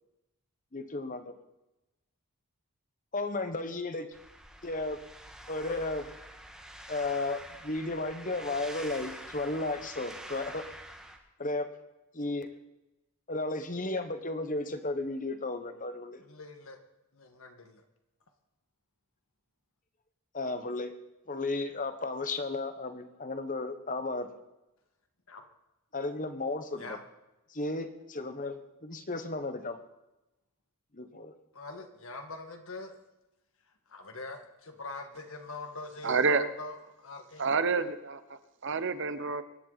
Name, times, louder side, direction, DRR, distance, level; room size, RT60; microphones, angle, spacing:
voice 1, 0.7-1.3 3.1-4.1 4.6-5.0 5.5-6.1 6.9-10.6 11.4-11.7 12.1-12.5 13.3-16.2 20.3-20.9 21.3-24.3 25.9-27.0 27.5-29.8 30.9-31.3, left 2 dB, 35° left, 9 dB, 1.3 m, -34 dB
sound 1, 4.1-11.2, right 1 dB, 5° right, 1.5 m, -47 dB
voice 2, 16.2-16.8 17.1-17.8 25.3-25.4 26.8-27.0 31.5-33.0 33.9-37.5, left 3 dB, 65° left, 4 dB, 2.0 m, -43 dB
voice 3, 36.0-36.4 37.4-39.4, right 4 dB, 55° right, 12 dB, 0.9 m, -28 dB
23.5 x 11.0 x 4.2 m, 0.97 s
head